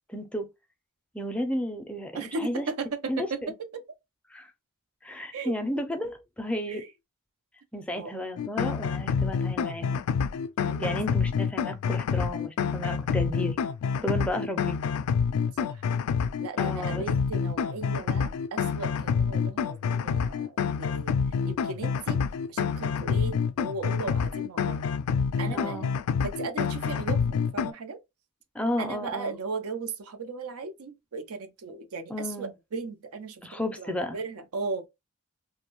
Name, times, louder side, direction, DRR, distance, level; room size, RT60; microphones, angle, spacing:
voice 1, 0.1-0.5 1.1-2.7 3.1-3.5 4.3-4.5 5.0-6.8 7.7-10.0 10.8-13.6 14.0-14.8 16.6-17.1 25.5-25.9 28.5-29.4 32.1-32.5 33.4-34.2, left 1 dB, 5° left, 0.4 m, -33 dB
voice 2, 2.1-3.8 5.3-5.6 6.7-6.9 7.9-8.1 10.6-11.0 15.6-15.8 16.4-21.1 21.5-22.2 22.5-24.8 25.4-25.9 26.2-28.0 28.8-32.1 32.4-33.4 33.8-34.9, right 4 dB, 85° right, 0.5 m, -36 dB
sound 1, 8.4-27.7, left 6 dB, 80° left, 0.3 m, -28 dB
2.5 x 2.2 x 2.9 m
head